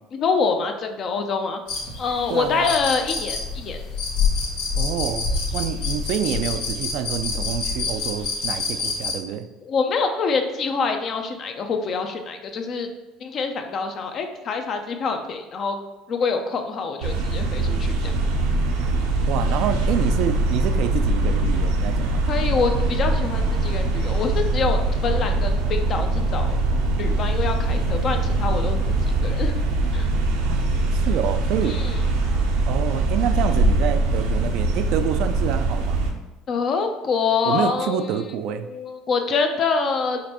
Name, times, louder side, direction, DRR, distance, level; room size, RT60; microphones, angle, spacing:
voice 1, 0.1-1.6 2.0-3.8 9.6-12.9 13.2-15.8 16.1-18.1 22.3-26.6 27.0-28.8 29.2-29.6 29.9-30.1 31.6-32.0 36.5-40.2, left 5 dB, 45° left, 6 dB, 0.6 m, -25 dB
sound 1, 1.7-9.1, left 4 dB, 80° left, 1.2 m, -27 dB
voice 2, 2.3-2.8 4.8-9.5 19.3-22.3 30.4-30.6 30.9-31.8 32.7-36.0 37.5-38.7, right 9 dB, 70° right, 10 dB, 0.3 m, -27 dB
sound 2, 17.0-36.1, right 2 dB, 90° right, 0.7 m, -22 dB
5.1 x 3.2 x 2.9 m, 1.1 s
supercardioid pair, 100°, 0 cm